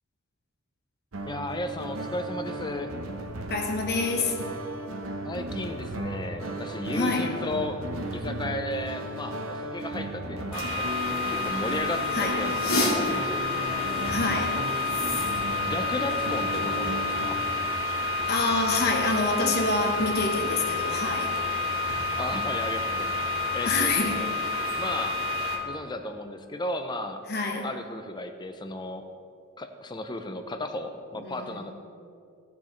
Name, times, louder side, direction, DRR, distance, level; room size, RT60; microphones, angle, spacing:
sound 1, 1.1-17.3, right 1 dB, 70° right, 0.8 m, -36 dB
voice 1, 1.3-2.9 5.3-7.8 8.1-13.9 15.7-17.4 22.2-23.2 23.5-24.3 24.8-25.2 25.7-27.2 27.6-29.1 29.6-31.7, left 1 dB, 20° left, 7 dB, 0.6 m, -34 dB
voice 2, 3.5-4.4 6.9-7.3 12.1-12.4 14.1-14.5 18.3-21.3 23.6-24.2 27.3-27.7 31.2-31.7, left 3 dB, 50° left, 2 dB, 1.3 m, -27 dB
sound 2, 10.5-25.6, left 3 dB, 85° left, 2.3 m, -28 dB
16.5 x 7.1 x 3.2 m, 2.4 s
head